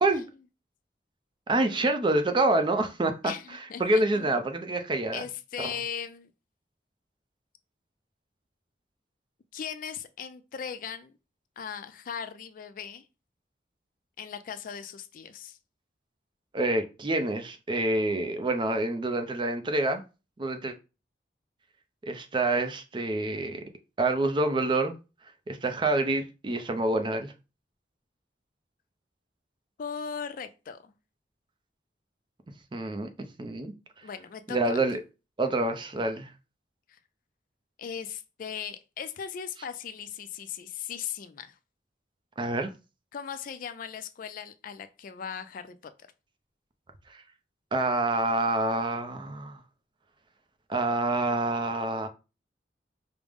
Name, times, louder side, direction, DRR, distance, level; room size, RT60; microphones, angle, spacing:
voice 1, 1.5-5.2 5.6-5.7 16.5-20.0 20.4-20.7 22.0-23.6 24.0-24.9 25.5-27.3 32.7-33.1 33.4-33.7 34.5-35.0 35.4-36.3 42.4-42.7 47.7-49.6 50.7-52.1, right 2 dB, 25° right, 0.4 m, -27 dB
voice 2, 3.2-4.4 5.1-6.3 9.5-11.2 11.6-13.0 14.2-15.6 29.8-30.9 34.0-34.8 36.9-37.0 37.8-41.6 43.1-45.8, left 7 dB, 50° left, 0.3 m, -38 dB
4.9 x 2.0 x 3.4 m
head